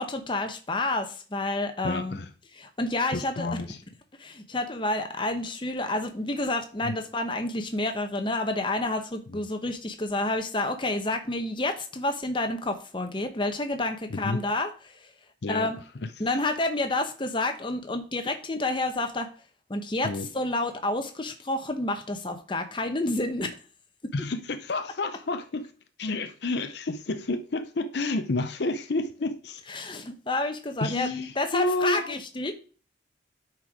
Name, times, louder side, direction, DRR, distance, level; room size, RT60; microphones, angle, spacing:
voice 1, 0.0-2.2 2.6-3.5 4.2-15.1 15.5-15.8 16.2-19.3 19.7-23.5 24.0-24.1 29.7-31.1 31.4-32.5, left 2 dB, 25° left, 0.9 m, -29 dB
voice 2, 1.8-2.3 3.1-3.8 6.8-7.0 9.3-9.4 14.1-14.4 15.4-16.4 20.0-20.3 24.1-25.7 26.0-29.6 30.8-32.2, left 2 dB, 60° left, 0.6 m, -30 dB
9.4 x 4.6 x 5.0 m
head